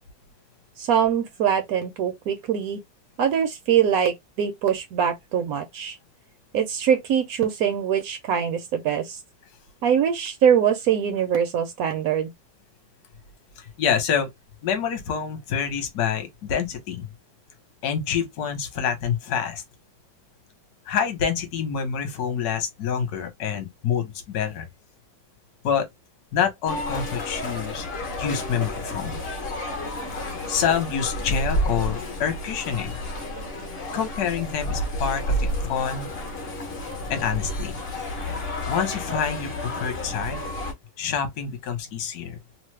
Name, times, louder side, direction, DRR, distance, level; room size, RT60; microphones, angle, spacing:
voice 1, 0.8-2.8 3.2-6.0 6.5-9.2 9.8-12.3, right 8 dB, 70° right, 0.8 m, -23 dB
voice 2, 13.6-14.3 14.6-17.1 17.8-19.6 20.9-24.7 25.6-25.9 26.3-27.9 28.2-29.2 30.5-32.9 33.9-36.1 37.1-37.8 38.7-40.4 41.0-42.4, left 7 dB, 65° left, 1.2 m, -27 dB
sound 1, 26.7-40.7, equal, 45° left, 0.8 m, -30 dB
3.1 x 2.0 x 3.1 m
omnidirectional pair, 2.1 m